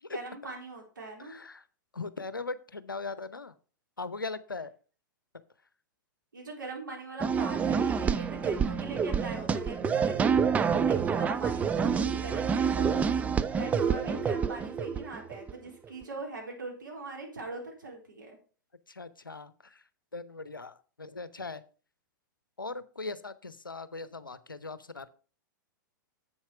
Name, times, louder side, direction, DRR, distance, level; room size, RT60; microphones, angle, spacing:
voice 1, 0.1-1.4 6.3-10.4 10.7-13.0 13.5-18.4, right 3 dB, 70° right, 0 dB, 3.9 m, -41 dB
voice 2, 1.3-1.6 1.9-3.5 4.0-4.7 18.9-19.8 20.1-21.6 22.6-25.1, left 3 dB, 80° left, 15 dB, 0.7 m, -39 dB
sound 1, 7.2-15.5, right 6 dB, 15° right, 0.4 m, -28 dB
7.9 x 7.2 x 4.8 m, 0.38 s
figure-of-eight pair, 105°, 11 cm